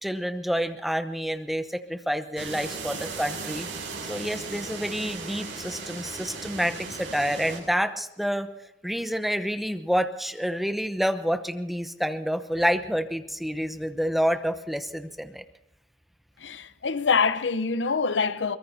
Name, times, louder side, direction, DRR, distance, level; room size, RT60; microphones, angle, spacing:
voice 1, 0.0-3.7 4.1-8.5 8.8-15.4, equal, ahead, 0.8 m, -28 dB
sound 1, 2.4-7.6, right 4 dB, 85° right, 7.4 m, -37 dB
voice 2, 16.4-18.6, left 5 dB, 80° left, 0.8 m, -25 dB
23.0 x 21.5 x 2.8 m
head